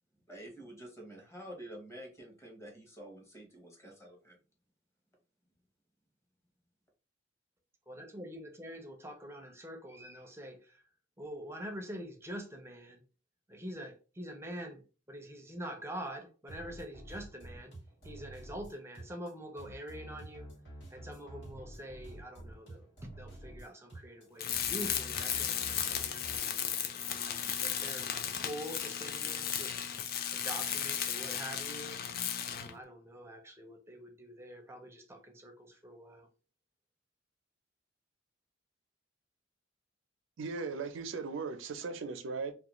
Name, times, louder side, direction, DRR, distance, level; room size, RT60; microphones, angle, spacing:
voice 1, 0.3-4.4, right 1 dB, 15° left, 0.8 m, -49 dB
voice 2, 7.9-10.8 11.2-13.0 13.5-14.8 15.1-17.7 18.0-20.5 20.9-26.8 27.1-28.0 28.4-32.0 32.5-36.3, equal, 15° right, 0.5 m, -45 dB
sound 1, 16.5-26.4, right 1 dB, 75° left, 1.4 m, -49 dB
Tools, 24.4-32.8, left 8 dB, 50° left, 0.3 m, -35 dB
voice 3, 40.4-42.5, right 4 dB, 85° right, 0.4 m, -38 dB
2.4 x 2.2 x 2.9 m
head